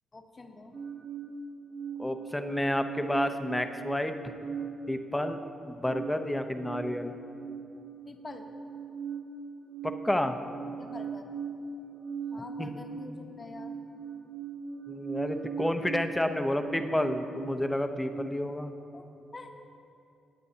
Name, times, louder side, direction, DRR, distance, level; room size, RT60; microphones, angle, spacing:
voice 1, 0.1-0.7 8.0-8.5 10.8-11.3 12.3-13.7 18.9-19.0 19.3-19.5, left 3 dB, 35° left, 4 dB, 1.0 m, -45 dB
sound 1, 0.7-18.3, right 5 dB, 55° right, 1.3 m, -40 dB
voice 2, 2.0-4.1 4.9-5.4 5.7-7.1 9.8-10.4 12.6-12.7 14.9-18.7, left 1 dB, 10° left, 7 dB, 0.7 m, -30 dB
19.0 x 8.2 x 2.8 m, 2.7 s
cardioid pair, 80°, 0 cm